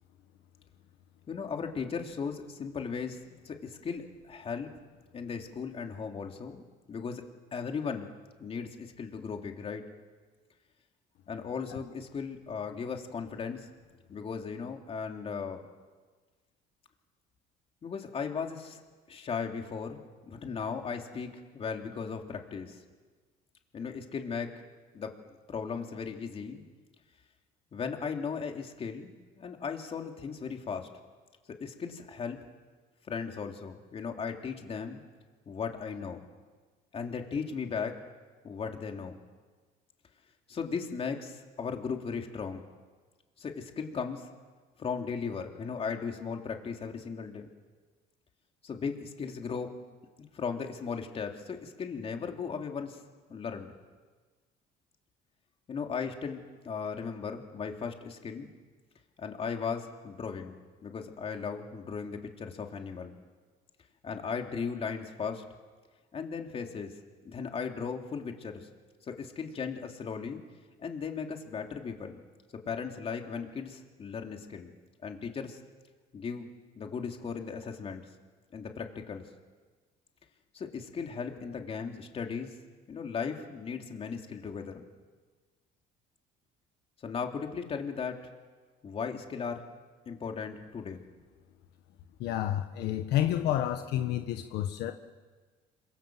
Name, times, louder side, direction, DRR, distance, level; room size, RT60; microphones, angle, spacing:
voice 1, 1.3-3.2 3.4-4.7 5.1-6.6 6.9-7.2 7.5-8.1 8.4-9.8 11.3-13.7 14.1-15.7 17.8-18.8 19.1-20.0 20.3-22.8 23.7-24.5 24.9-25.1 25.5-26.6 27.7-30.9 31.6-32.4 33.1-35.0 35.5-36.3 36.9-38.0 38.4-39.2 40.5-42.6 43.4-44.3 44.8-47.5 48.6-49.7 50.2-53.0 53.3-53.7 55.7-58.5 59.2-60.5 60.8-63.1 64.0-65.4 66.1-66.9 67.2-68.7 69.0-70.4 70.8-72.2 72.6-74.7 75.0-75.6 76.1-76.5 76.8-78.0 78.5-79.2 80.5-82.5 82.9-84.8 87.0-88.2 88.8-89.6 90.0-91.0, left 5 dB, 35° left, 3 dB, 3.1 m, -37 dB
voice 2, 92.2-94.9, left 12 dB, 75° left, 6 dB, 1.4 m, -29 dB
27.5 x 25.5 x 7.8 m, 1.4 s
cardioid pair, 130°, 17 cm